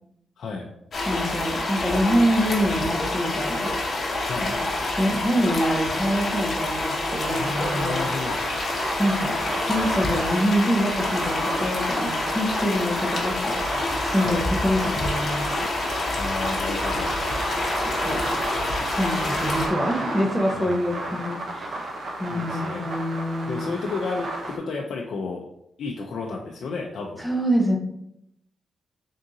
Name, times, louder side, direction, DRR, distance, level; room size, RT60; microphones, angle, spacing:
voice 1, 0.4-0.7 4.2-4.6 7.3-8.4 14.2-14.4 16.1-17.1 20.5-20.9 22.3-22.9 23.5-25.4 25.8-27.2, left 4 dB, 70° left, 0 dB, 0.4 m, -32 dB
sound 1, 0.9-19.7, left 2 dB, 45° left, 0.9 m, -27 dB
voice 2, 1.1-3.7 4.6-4.7 5.0-8.0 9.0-13.6 14.0-15.5 17.8-18.2 18.9-21.8 22.2-23.8 27.2-27.8, equal, 5° right, 1 dB, 0.6 m, -25 dB
sound 2, 7.0-24.6, right 2 dB, 50° right, 0.6 m, -33 dB
3.6 x 2.6 x 3.8 m, 0.79 s
wide cardioid pair, 135°, 0 cm